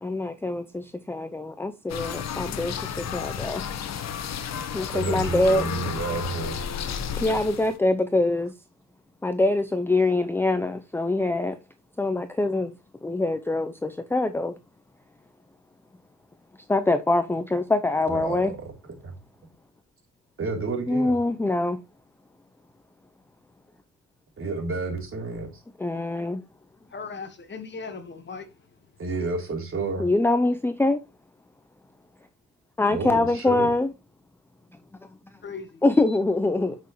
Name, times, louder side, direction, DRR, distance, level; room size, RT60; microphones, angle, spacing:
voice 1, 0.0-3.7 4.7-5.7 7.1-8.5 9.2-11.6 12.0-12.7 13.0-14.5 16.7-18.5 20.9-21.8 25.8-26.4 30.0-31.0 32.8-33.9 35.8-36.8, left 2 dB, 10° left, 0.6 m, -24 dB
sound 1, 1.9-7.8, left 8 dB, 60° left, 1.1 m, -32 dB
voice 2, 4.9-6.6 18.1-18.7 19.0-19.1 20.4-21.2 24.4-25.5 29.0-30.1 32.9-33.7, right 4 dB, 45° right, 3.6 m, -30 dB
voice 3, 26.9-28.5 35.4-35.8 36.1-36.2, left 4 dB, 35° left, 1.5 m, -38 dB
8.2 x 6.2 x 3.1 m
cardioid pair, 90°, 30 cm